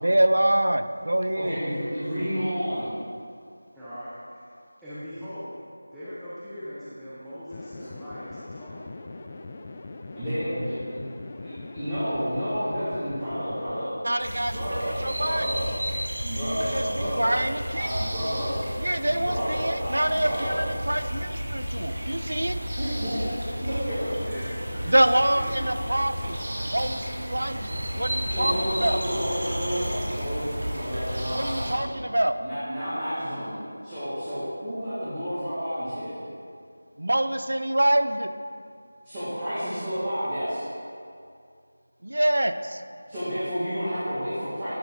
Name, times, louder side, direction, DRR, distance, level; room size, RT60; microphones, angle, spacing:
voice 1, 0.0-1.6 14.0-15.5 16.7-17.9 18.8-22.6 24.8-26.4 26.7-28.5 28.8-29.0 31.3-32.3 37.0-38.3 42.0-42.8, right 1 dB, 75° right, 9 dB, 0.4 m, -25 dB
voice 2, 1.3-2.9 10.2-11.1 11.4-14.0 14.4-15.7 16.2-17.4 17.7-18.5 19.0-20.6 22.8-23.2 23.5-24.3 24.5-24.6 28.0-32.0 32.4-33.6 33.8-36.2 39.0-40.6 43.1-44.7, equal, 20° right, -16 dB, 1.9 m, -31 dB
voice 3, 3.7-4.4 4.8-5.5 5.9-9.2 18.0-18.5 24.3-24.5 24.8-25.0 25.3-25.5, equal, ahead, -16 dB, 0.7 m, -40 dB
sound 1, 7.5-13.9, left 2 dB, 30° left, 0.4 m, -41 dB
sound 2, 14.2-31.7, equal, 40° right, 1.5 m, -32 dB
11.0 x 3.9 x 3.8 m, 2.3 s
figure-of-eight pair, 170°, 0 cm